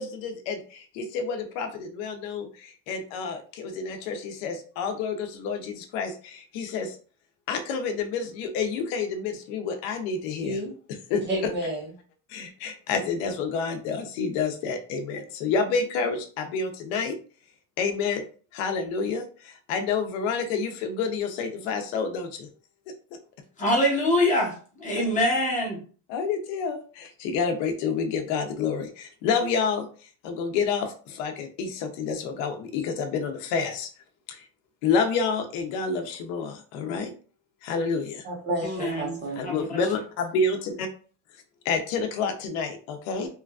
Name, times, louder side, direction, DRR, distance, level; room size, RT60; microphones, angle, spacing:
voice 1, 0.0-7.0 7.5-10.6 11.1-11.2 12.3-17.2 17.8-18.2 18.5-22.5 22.9-23.2 24.9-25.0 26.1-29.9 30.2-33.9 34.3-34.4 34.8-37.1 37.6-38.3 39.4-40.9 41.6-43.3, left 5 dB, 90° left, 0.7 m, -29 dB
voice 2, 11.3-11.9 38.2-39.4, right 1 dB, 30° right, 0.9 m, -30 dB
voice 3, 23.6-25.8 38.6-39.8, left 1 dB, 20° left, 0.9 m, -25 dB
3.0 x 2.4 x 2.3 m
cardioid pair, 170°, 37 cm